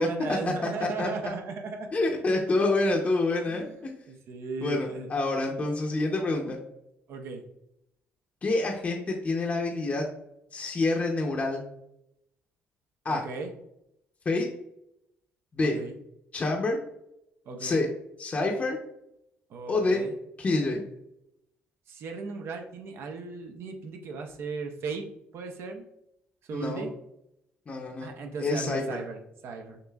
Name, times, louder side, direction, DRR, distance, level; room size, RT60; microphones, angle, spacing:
voice 1, 0.0-1.9 3.5-3.8 4.1-5.1 7.1-7.4 13.1-13.5 15.6-16.0 17.5-17.8 19.5-20.2 21.9-25.1 25.3-25.8 26.5-26.9 28.0-29.8, right 4 dB, 70° right, 4 dB, 0.6 m, -36 dB
voice 2, 0.6-1.1 1.9-3.9 4.6-6.6 8.4-10.0 10.5-11.6 13.0-13.2 14.3-14.5 15.5-15.8 16.3-16.8 17.6-17.9 18.2-18.8 19.7-20.0 20.4-20.8 26.5-26.8 27.7-28.1 28.4-29.0, left 2 dB, 35° left, 0 dB, 0.6 m, -27 dB
6.5 x 2.6 x 2.3 m, 0.79 s
cardioid pair, 100°, 4 cm